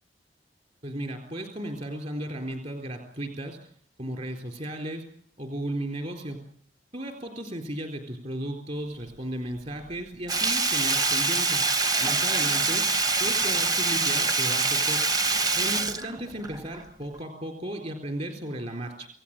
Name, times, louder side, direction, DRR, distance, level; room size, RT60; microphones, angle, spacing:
voice 1, 0.8-3.6 4.0-5.0 5.4-6.4 6.9-11.6 12.0-12.8 13.2-15.0 15.6-19.1, right 1 dB, 40° right, 4 dB, 3.9 m, -35 dB
Sink (filling or washing), 10.3-16.8 17.1-17.2, right 3 dB, 20° right, 0.9 m, -25 dB
28.0 x 17.0 x 8.9 m, 0.64 s
head